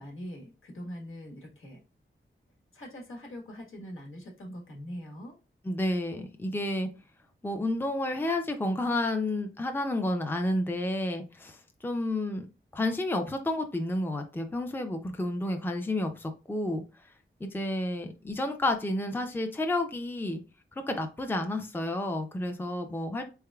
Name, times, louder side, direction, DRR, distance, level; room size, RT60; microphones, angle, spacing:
voice 1, 0.0-1.8 2.7-5.3, equal, 75° left, -1 dB, 1.4 m, -42 dB
voice 2, 5.6-6.9 7.4-12.5 12.7-16.8 17.4-20.4 20.9-23.2, left 1 dB, 10° left, 5 dB, 0.5 m, -30 dB
3.8 x 3.5 x 2.3 m, 0.31 s
wide cardioid pair, 70°, 21 cm